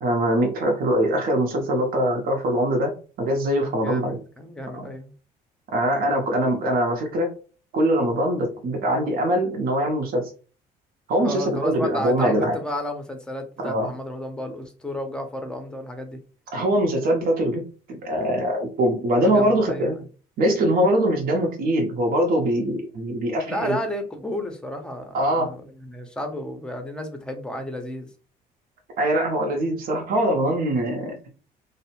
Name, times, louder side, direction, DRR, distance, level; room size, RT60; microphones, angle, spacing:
voice 1, 0.0-2.9 3.2-4.2 4.7-4.9 5.7-7.3 7.7-10.3 11.1-12.6 13.6-13.9 16.5-17.6 17.9-20.0 20.4-23.7 25.1-25.5 29.0-31.1, right 1 dB, 60° right, 1 dB, 0.7 m, -22 dB
voice 2, 3.6-5.1 11.2-16.2 19.1-20.0 23.5-28.1, left 1 dB, 5° left, 5 dB, 0.6 m, -32 dB
2.6 x 2.0 x 2.9 m, 0.37 s
cardioid pair, 110°, 17 cm